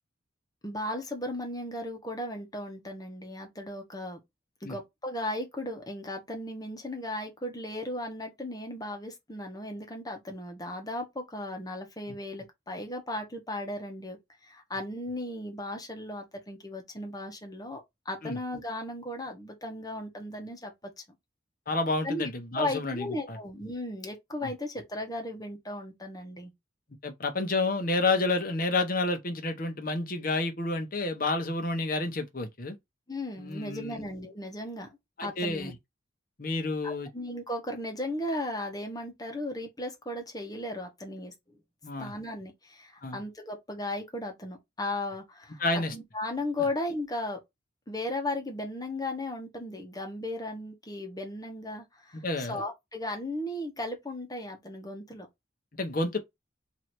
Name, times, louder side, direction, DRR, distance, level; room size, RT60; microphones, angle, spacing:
voice 1, 0.6-4.2 4.6-14.2 14.4-21.0 22.0-22.3 22.5-26.5 33.1-34.9 35.2-35.7 36.8-41.6 42.0-47.4 47.9-55.3, left 1 dB, 20° left, 1.2 m, -36 dB
voice 2, 21.7-23.4 27.0-32.8 33.4-34.0 35.2-35.7 36.4-37.1 41.8-42.1 43.0-43.2 45.6-45.9 52.2-52.6 55.8-56.2, left 2 dB, 45° left, 0.9 m, -30 dB
3.2 x 2.8 x 4.3 m
head